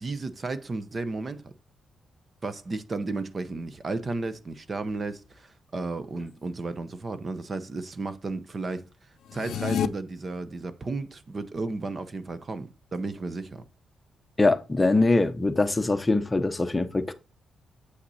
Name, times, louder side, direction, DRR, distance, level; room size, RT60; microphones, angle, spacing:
voice 1, 0.0-1.5 2.4-8.8 9.3-13.6, right 3 dB, 30° right, 0.8 m, -33 dB
sound 1, 9.2-9.9, left 9 dB, 75° left, 0.5 m, -28 dB
voice 2, 14.4-17.1, left 2 dB, 15° left, 0.8 m, -23 dB
8.1 x 5.9 x 4.1 m
cardioid pair, 120°, 0 cm